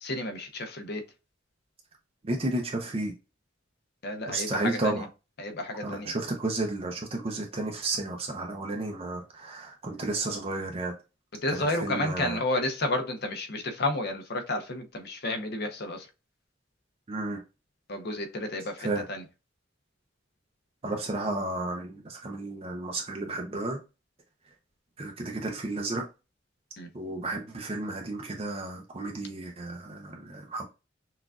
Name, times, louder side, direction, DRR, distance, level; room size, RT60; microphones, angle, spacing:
voice 1, 0.0-1.0 4.0-5.1 5.4-6.1 11.4-16.1 17.9-19.2 26.8-26.9, left 2 dB, 60° left, 0.8 m, -31 dB
voice 2, 2.2-3.1 4.3-5.1 5.8-10.9 11.5-12.4 17.1-17.4 18.8-19.0 20.8-23.8 25.0-26.1 26.9-30.6, right 2 dB, 30° right, 0.6 m, -32 dB
5.9 x 2.5 x 2.3 m
head